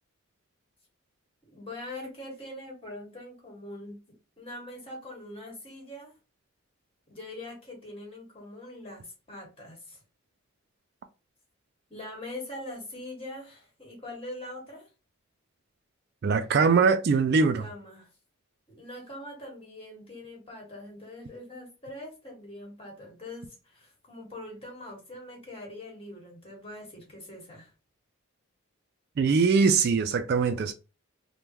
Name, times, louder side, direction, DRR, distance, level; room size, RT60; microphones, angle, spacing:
voice 1, 1.5-4.0 4.4-6.1 7.1-10.0 11.9-14.9 17.3-18.1 18.7-27.7, left 1 dB, 25° left, 1.5 m, -43 dB
voice 2, 16.2-17.7 29.2-30.7, right 5 dB, 50° right, 0.3 m, -22 dB
3.5 x 2.2 x 2.9 m
head